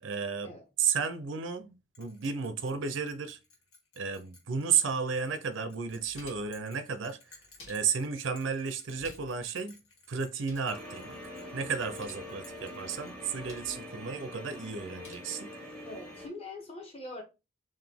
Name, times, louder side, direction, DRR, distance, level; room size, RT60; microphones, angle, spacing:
voice 1, 0.0-3.4 4.0-7.2 7.7-9.8 10.1-11.2 11.5-15.5, right 6 dB, 60° right, 0.5 m, -33 dB
Bell, 1.9-13.6, left 3 dB, 80° left, 1.8 m, -59 dB
sound 1, 5.7-6.6 7.3-8.2 8.8-9.5 9.7-9.8 10.2-10.7 11.8-12.3 13.1-13.8 14.7-15.1, left 2 dB, 65° left, 1.6 m, -54 dB
sound 2, 10.7-16.3, left 1 dB, 5° left, 0.8 m, -44 dB
voice 2, 15.8-17.2, left 2 dB, 30° left, 1.1 m, -43 dB
3.9 x 2.6 x 3.4 m
head